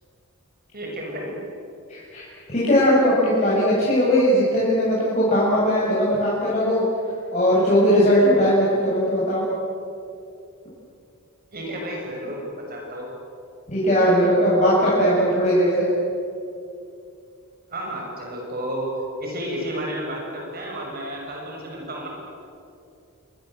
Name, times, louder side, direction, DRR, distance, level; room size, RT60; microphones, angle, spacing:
voice 1, 0.7-1.4 11.5-13.1 17.7-22.1, right 1 dB, 45° right, 0 dB, 6.8 m, -31 dB
voice 2, 1.9-2.2 2.5-6.8 7.3-9.4 13.7-15.9, equal, 35° left, -8 dB, 8.0 m, -19 dB
28.0 x 25.5 x 8.0 m, 2.6 s
head